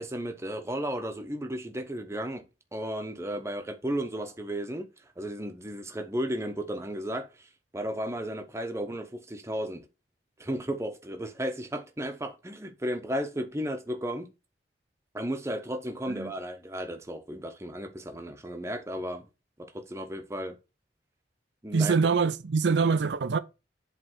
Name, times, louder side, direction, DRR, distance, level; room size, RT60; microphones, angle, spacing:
voice 1, 0.0-2.4 2.7-4.9 5.2-9.9 10.4-14.3 15.1-19.3 19.6-20.6 21.6-21.9, equal, 15° right, 0.9 m, -34 dB
voice 2, 21.7-23.4, right 5 dB, 75° right, 0.5 m, -24 dB
7.9 x 3.3 x 6.0 m
head